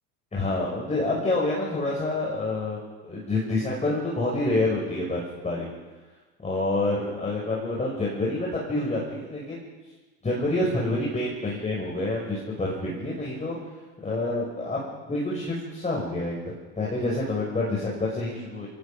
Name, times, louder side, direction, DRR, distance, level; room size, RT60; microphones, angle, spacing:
voice 1, 0.3-5.7 6.4-9.6 10.2-13.6 14.0-18.7, left 2 dB, 15° left, -4 dB, 6.5 m, -28 dB
28.5 x 18.5 x 5.3 m, 1.2 s
hypercardioid pair, 85°, 46 cm